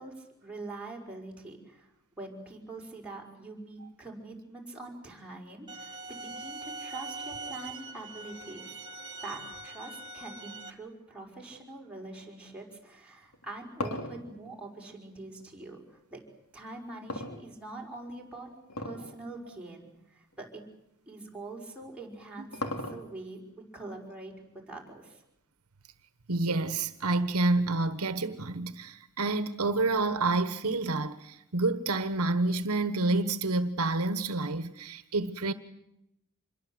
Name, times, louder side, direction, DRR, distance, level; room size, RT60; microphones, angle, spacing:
voice 1, 0.0-1.9 2.2-8.8 9.2-15.8 16.1-16.2 16.5-18.5 18.8-20.6 21.1-25.2, right 2 dB, 5° right, 5.6 m, -44 dB
sound 1, 5.7-10.7, right 3 dB, 20° right, 1.8 m, -42 dB
sound 2, 13.3-15.7 17.1-18.0 18.7-19.1 19.5-19.6 20.3-20.4 21.8-23.3, left 2 dB, 90° left, 3.3 m, -37 dB
voice 2, 26.3-35.5, right 2 dB, 75° right, 1.2 m, -28 dB
26.5 x 22.0 x 8.0 m
head